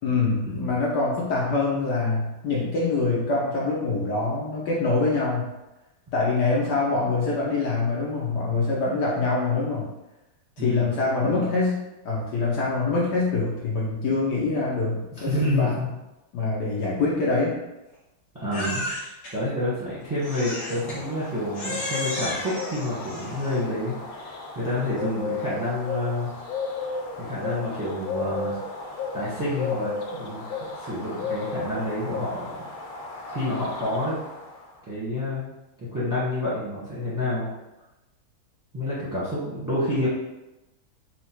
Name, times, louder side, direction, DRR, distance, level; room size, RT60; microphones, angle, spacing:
voice 1, 0.0-5.5 6.1-9.9 10.6-11.8 12.0-15.8 16.3-17.5, left 3 dB, 65° left, -5 dB, 1.2 m, -25 dB
voice 2, 10.6-10.9 11.2-11.5 15.2-15.9 18.3-18.8 19.3-26.3 27.2-28.6 29.1-32.6 33.2-34.1 34.9-35.4 35.9-37.5 38.7-40.1, left 1 dB, 15° right, -9 dB, 0.9 m, -28 dB
Crying sobbing, 18.5-19.3 20.2-21.0 21.5-23.7, left 1 dB, 45° left, 1.1 m, -33 dB
sound 1, 20.0-34.7, left 4 dB, 85° left, 1.4 m, -34 dB
4.3 x 2.4 x 4.4 m, 1.0 s
omnidirectional pair, 2.3 m